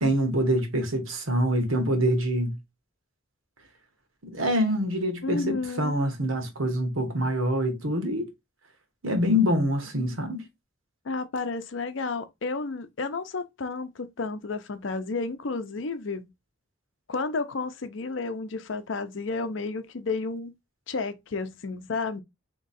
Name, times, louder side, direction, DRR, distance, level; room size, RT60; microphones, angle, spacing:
voice 1, 0.0-2.6 4.2-8.3 9.0-10.5, equal, 80° right, 1.2 m, -25 dB
voice 2, 5.2-6.0 11.0-16.3 17.1-20.5 20.9-22.2, left 3 dB, 70° left, 0.6 m, -31 dB
3.6 x 3.0 x 4.1 m
head